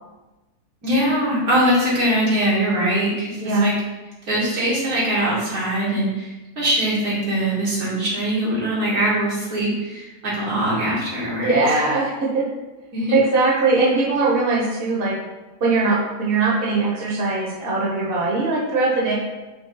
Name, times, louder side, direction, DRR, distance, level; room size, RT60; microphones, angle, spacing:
voice 1, 0.8-3.7 4.2-6.3 6.6-11.6 12.9-13.2, right 1 dB, 85° right, -8 dB, 2.8 m, -22 dB
voice 2, 3.4-3.7 11.4-12.4 13.1-15.1 15.6-19.1, right 3 dB, 45° right, -4 dB, 1.4 m, -20 dB
6.0 x 3.2 x 5.6 m, 1.1 s
omnidirectional pair, 1.5 m